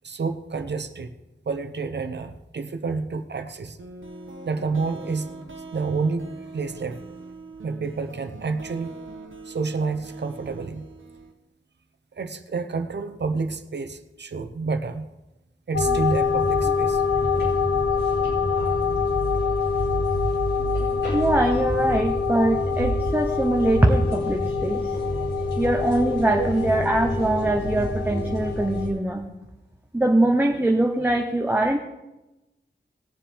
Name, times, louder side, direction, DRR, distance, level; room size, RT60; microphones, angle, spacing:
voice 1, 0.0-1.1 1.5-3.8 4.4-5.3 5.7-7.0 7.6-8.9 9.5-10.9 12.2-15.1 15.7-17.0 26.4-26.5, right 4 dB, 60° right, 7 dB, 0.9 m, -29 dB
sound 1, 3.8-11.3, right 3 dB, 85° right, 1.2 m, -41 dB
sound 2, 15.7-28.9, left 4 dB, 65° left, 4.0 m, -24 dB
voice 2, 21.1-24.9 25.6-29.2 29.9-31.8, right 1 dB, 10° right, 3 dB, 0.7 m, -22 dB
19.5 x 7.4 x 3.5 m, 1.0 s
wide cardioid pair, 100°, 20 cm